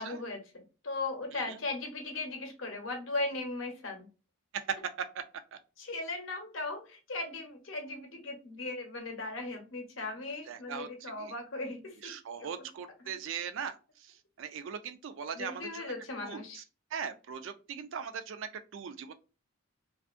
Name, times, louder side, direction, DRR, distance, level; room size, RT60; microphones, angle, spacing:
voice 1, 0.0-4.1 5.8-12.1 12.4-12.5 15.3-16.6, left 2 dB, 65° left, 4 dB, 0.7 m, -38 dB
voice 2, 4.5-5.2 10.5-11.3 12.0-15.9 16.2-16.6 16.9-19.1, right 7 dB, 60° right, 9 dB, 0.3 m, -39 dB
2.5 x 2.4 x 2.4 m, 0.32 s
head